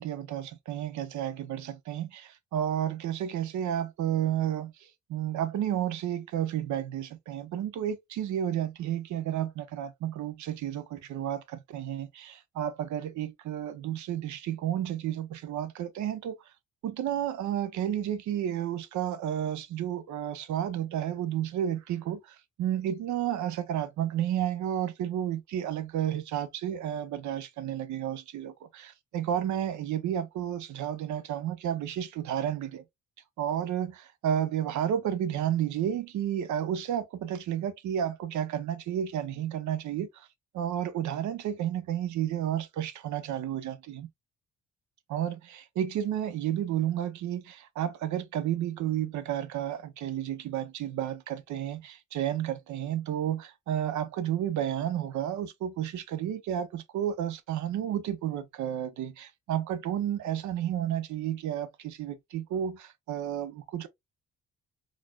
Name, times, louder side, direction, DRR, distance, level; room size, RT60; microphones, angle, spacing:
voice 1, 0.0-16.4 16.8-32.8 33.4-40.3 40.5-44.1 45.1-63.9, right 10 dB, 70° right, 0.6 m, -31 dB
4.0 x 2.4 x 2.3 m
cardioid pair, 90°, 30 cm